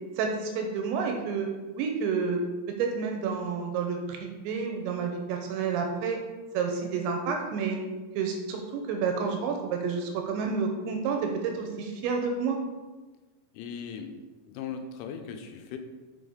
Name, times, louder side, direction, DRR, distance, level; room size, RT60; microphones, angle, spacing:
voice 1, 0.2-1.5 1.8-2.4 2.8-6.2 6.5-7.8 8.2-12.6, right 5 dB, 80° right, 3 dB, 2.9 m, -29 dB
voice 2, 13.5-14.2 14.5-15.8, left 6 dB, 85° left, 5 dB, 3.0 m, -38 dB
7.0 x 5.4 x 5.0 m, 1.3 s
omnidirectional pair, 5.6 m